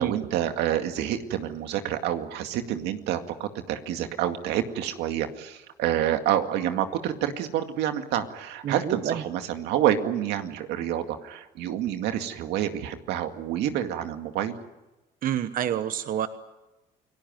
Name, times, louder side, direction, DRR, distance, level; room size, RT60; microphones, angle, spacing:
voice 1, 0.0-14.5, right 11 dB, 85° right, 7 dB, 2.1 m, -28 dB
voice 2, 8.6-9.2 15.2-16.3, right 10 dB, 55° right, 11 dB, 1.1 m, -28 dB
29.0 x 18.5 x 9.3 m, 1.1 s
cardioid pair, 110°, 17 cm